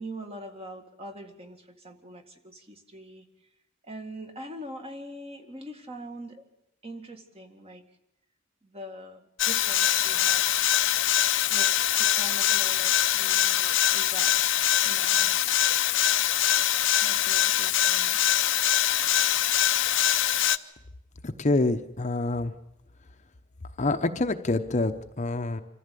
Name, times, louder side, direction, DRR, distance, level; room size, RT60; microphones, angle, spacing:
voice 1, 0.0-3.3 3.8-6.4 6.8-7.8 8.6-10.5 11.5-15.4 17.0-18.2, right 1 dB, 30° right, 5 dB, 1.9 m, -43 dB
sound 1, 9.4-20.6, left 12 dB, 65° left, 0.7 m, -23 dB
voice 2, 21.4-22.5 23.8-25.6, left 2 dB, 35° left, 8 dB, 0.9 m, -26 dB
26.0 x 14.5 x 8.4 m, 0.85 s
head